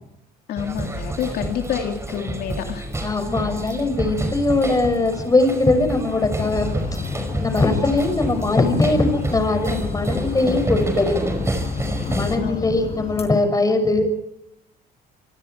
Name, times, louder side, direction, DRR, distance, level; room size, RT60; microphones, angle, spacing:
voice 1, 0.5-2.9 12.4-12.6, left 9 dB, 70° left, 4 dB, 2.6 m, -28 dB
sound 1, 0.6-12.4, right 1 dB, 15° right, 5.2 m, -29 dB
voice 2, 3.0-6.7 7.4-11.1 12.1-14.1, left 2 dB, 20° left, 7 dB, 6.4 m, -20 dB
sound 2, 6.4-13.3, left 5 dB, 35° left, 4.8 m, -30 dB
27.5 x 24.5 x 4.6 m, 0.78 s
cardioid pair, 110°, 17 cm